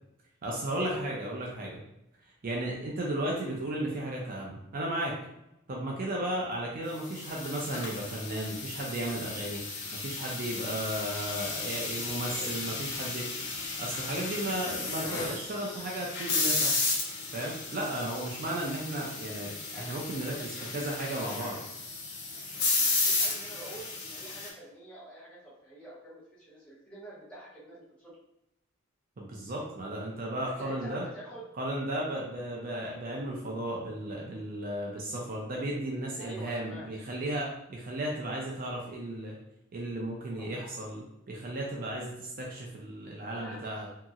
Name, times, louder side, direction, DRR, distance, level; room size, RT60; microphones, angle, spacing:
voice 1, 0.4-1.8 2.4-5.2 5.7-9.6 9.9-13.3 13.8-16.8 17.3-21.5 29.2-31.0 31.6-39.4 39.7-43.9, right 1 dB, 45° right, -2 dB, 0.4 m, -34 dB
sound 1, 7.0-24.5, left 3 dB, 55° left, 0.6 m, -34 dB
voice 2, 19.6-21.3 22.8-28.1 30.4-31.4 36.2-36.9 40.4-40.6 43.3-43.9, right 1 dB, 5° left, -9 dB, 1.0 m, -47 dB
2.9 x 2.7 x 2.4 m, 0.86 s
head